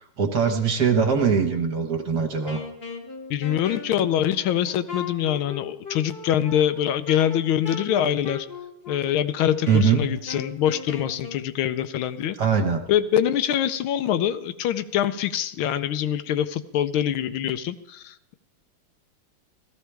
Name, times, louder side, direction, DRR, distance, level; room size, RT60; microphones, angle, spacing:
voice 1, 0.2-2.6 9.7-10.0 12.4-12.8, right 6 dB, 55° right, 4 dB, 1.7 m, -21 dB
Wind instrument woodwind instrument, 2.4-11.4, left 5 dB, 35° left, 1.2 m, -38 dB
voice 2, 3.3-8.5 8.9-12.3 12.9-18.3, left 10 dB, 80° left, 11 dB, 1.4 m, -24 dB
16.5 x 14.0 x 3.4 m, 0.83 s
omnidirectional pair, 2.3 m